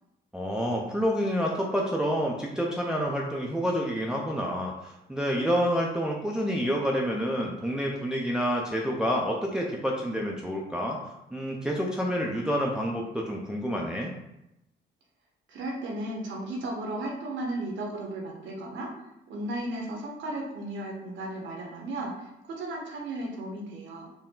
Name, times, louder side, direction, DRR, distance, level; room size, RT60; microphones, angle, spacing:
voice 1, 0.3-11.0 11.3-14.1, equal, 5° right, -2 dB, 0.5 m, -28 dB
voice 2, 15.5-18.9 19.3-24.1, right 1 dB, 75° right, -1 dB, 1.1 m, -35 dB
4.5 x 2.2 x 3.7 m, 0.87 s
cardioid pair, 90°, 20 cm